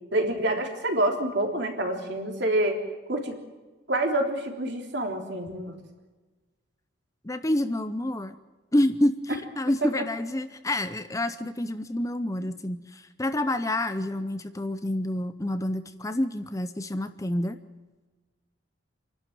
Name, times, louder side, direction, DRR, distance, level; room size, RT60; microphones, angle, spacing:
voice 1, 0.1-2.8 3.1-3.4 3.9-5.7, right 1 dB, 55° right, 3 dB, 3.5 m, -27 dB
voice 2, 7.2-8.4 8.7-17.6, left 1 dB, 15° left, 11 dB, 0.7 m, -28 dB
28.0 x 12.0 x 9.3 m, 1.3 s
head